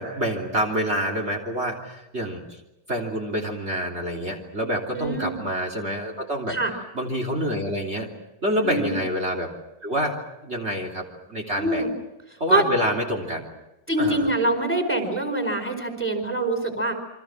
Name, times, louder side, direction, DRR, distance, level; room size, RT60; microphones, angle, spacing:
voice 1, 0.0-2.6 2.9-6.6 6.9-8.1 8.4-9.5 9.8-10.2 10.4-11.8 12.4-13.5 14.0-14.3, equal, 35° right, 2 dB, 3.5 m, -27 dB
voice 2, 4.9-5.4 6.5-6.7 8.6-8.9 11.6-11.9 12.5-12.7 13.9-16.9, right 2 dB, 5° left, 5 dB, 4.7 m, -24 dB
29.5 x 25.5 x 6.2 m, 0.94 s
omnidirectional pair, 1.9 m